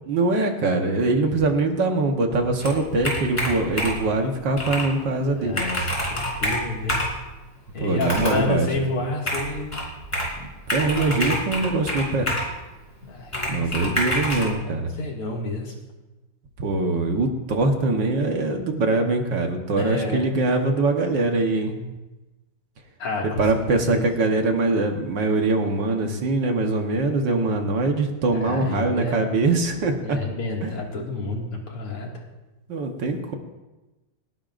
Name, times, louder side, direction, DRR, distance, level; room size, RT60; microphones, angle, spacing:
voice 1, 0.1-5.6 7.8-8.7 10.7-12.3 13.5-14.9 16.6-21.8 23.4-30.2 30.6-30.7 32.7-33.3, right 2 dB, 60° right, 4 dB, 1.7 m, -23 dB
Computer keyboard, 2.6-4.1 4.6-4.9 5.2-5.3 5.5-7.2 8.0-8.5 9.3-10.4 10.7-12.5 13.3-14.5, equal, 15° left, 3.6 m, -27 dB
voice 2, 5.3-7.1 7.7-9.7 13.0-14.0 14.4-15.7 19.7-20.2 23.0-23.4 23.9-24.0 28.3-29.3 30.0-32.2, left 3 dB, 85° left, -1 dB, 3.1 m, -30 dB
29.0 x 10.0 x 2.5 m, 1.1 s
omnidirectional pair, 2.4 m